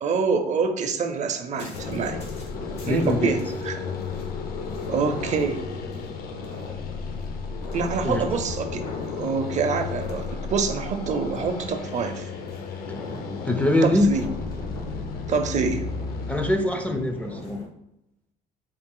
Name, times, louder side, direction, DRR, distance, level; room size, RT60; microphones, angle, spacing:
voice 1, 0.0-2.2 2.8-3.4 3.6-3.8 4.9-5.6 7.7-12.3 13.8-14.2 15.3-15.8, right 5 dB, 45° right, 7 dB, 0.5 m, -26 dB
sound 1, 1.5-17.7, left 2 dB, 85° left, 1.1 m, -41 dB
sound 2, 1.7-16.6, left 4 dB, 60° left, 0.5 m, -33 dB
voice 2, 2.8-3.4 8.0-8.2 13.4-14.1 16.3-17.6, left 1 dB, 10° left, 5 dB, 0.3 m, -23 dB
3.9 x 2.4 x 3.7 m, 0.85 s
cardioid pair, 110°, 17 cm